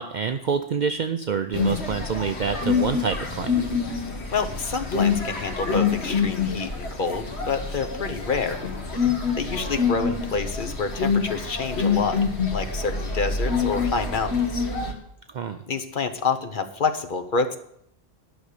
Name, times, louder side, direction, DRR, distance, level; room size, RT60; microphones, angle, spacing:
voice 1, 0.0-3.7 15.3-15.6, right 6 dB, 55° right, 7 dB, 0.6 m, -27 dB
sound 1, 1.5-14.9, left 5 dB, 75° left, 1.8 m, -26 dB
voice 2, 4.3-8.6 9.3-12.2 12.5-14.6 15.7-17.6, left 4 dB, 50° left, 7 dB, 1.1 m, -28 dB
11.5 x 6.2 x 6.6 m, 0.72 s
omnidirectional pair, 1.1 m